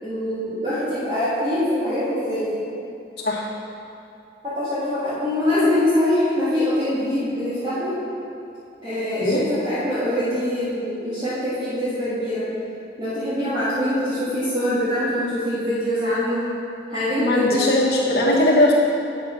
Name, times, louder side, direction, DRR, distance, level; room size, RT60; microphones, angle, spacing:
voice 1, 0.0-2.6 4.4-8.0 8.8-12.5 13.0-16.5 16.9-17.6, left 1 dB, 30° right, -15 dB, 2.2 m, -24 dB
voice 2, 17.2-18.7, left 1 dB, 60° left, -4 dB, 1.6 m, -19 dB
8.6 x 5.8 x 6.0 m, 2.6 s
head